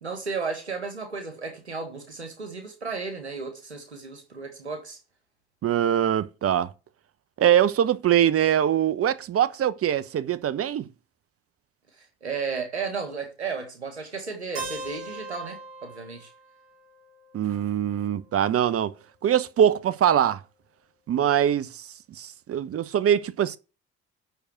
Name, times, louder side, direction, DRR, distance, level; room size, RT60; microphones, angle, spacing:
voice 1, 0.0-5.0 12.0-16.3, right 4 dB, 90° right, 1.7 m, -34 dB
voice 2, 5.6-6.7 7.4-10.9 17.3-18.9 19.2-20.4 21.1-21.9 22.2-23.6, right 10 dB, 45° right, 1.0 m, -23 dB
Keyboard (musical), 14.6-18.4, right 2 dB, 75° right, 5.5 m, -41 dB
8.1 x 6.5 x 6.1 m
figure-of-eight pair, 45°, 32 cm